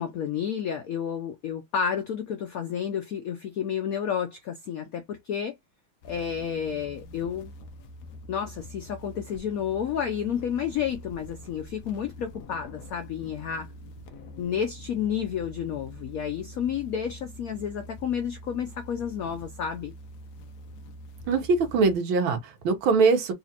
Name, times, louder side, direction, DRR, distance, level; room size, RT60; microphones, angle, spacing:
voice 1, 0.0-5.5 6.0-7.5 8.3-13.7 14.4-19.9, left 8 dB, 85° left, 0.7 m, -31 dB
sound 1, 6.0-22.0, equal, 65° left, 1.2 m, -45 dB
voice 2, 21.3-23.3, right 4 dB, 85° right, 1.7 m, -22 dB
4.2 x 2.4 x 2.8 m
omnidirectional pair, 2.1 m